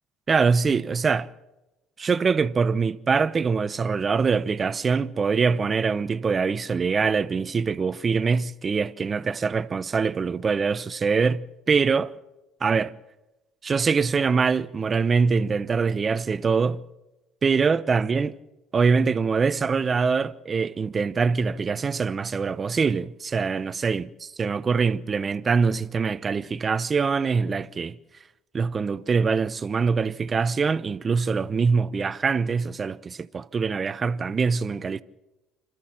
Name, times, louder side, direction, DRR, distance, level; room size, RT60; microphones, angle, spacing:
voice 1, 0.3-1.3 2.0-12.1 12.6-12.9 13.6-16.8 17.4-18.3 18.7-24.1 24.4-28.0 28.5-35.0, right 5 dB, 35° right, 0.9 m, -23 dB
27.0 x 14.0 x 7.5 m
hypercardioid pair, 55°, 0 cm